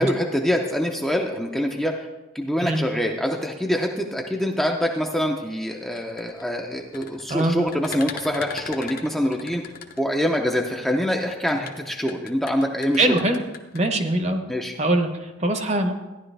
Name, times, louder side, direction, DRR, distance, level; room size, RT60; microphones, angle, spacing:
voice 1, 0.0-2.1 2.3-9.6 10.0-13.2 14.5-14.8, equal, ahead, 1 dB, 0.6 m, -25 dB
sound 1, 5.8-10.5 11.2-13.8, left 5 dB, 45° left, 0.8 m, -38 dB
voice 2, 13.0-13.4 13.7-14.4 14.8-15.9, right 1 dB, 35° right, 6 dB, 0.9 m, -22 dB
14.0 x 10.5 x 3.3 m, 1.1 s
head